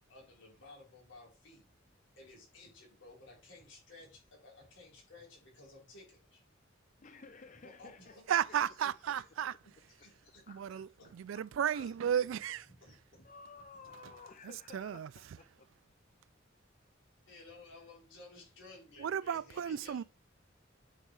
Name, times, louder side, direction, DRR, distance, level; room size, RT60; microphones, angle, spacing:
voice 1, 0.1-1.7 2.2-6.4 7.5-8.3 8.6-9.2 9.6-10.4 11.0-11.4 11.8-11.9 12.7-13.3 13.8-13.9 17.3-20.0, left 2 dB, 75° left, 4.1 m, -56 dB
voice 2, 7.0-8.6 10.5-10.8 11.4-11.5 11.7-12.2 13.2-15.7, left 4 dB, 40° left, 0.5 m, -54 dB
voice 3, 8.3-9.6 10.5-12.6 14.7-15.1 19.0-20.0, right 9 dB, 85° right, 0.3 m, -34 dB
9.0 x 5.4 x 3.2 m
head